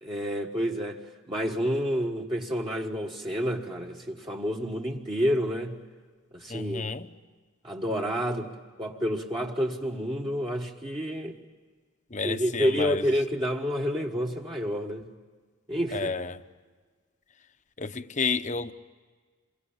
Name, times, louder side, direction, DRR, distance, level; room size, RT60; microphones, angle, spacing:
voice 1, 0.0-5.8 6.3-6.9 7.6-8.5 8.8-11.4 12.2-15.1 15.7-16.1, equal, 25° right, 1.4 m, -29 dB
voice 2, 6.5-7.1 12.1-13.0 15.9-16.4 17.8-18.7, left 4 dB, 35° left, 0.9 m, -30 dB
28.0 x 24.0 x 8.6 m
head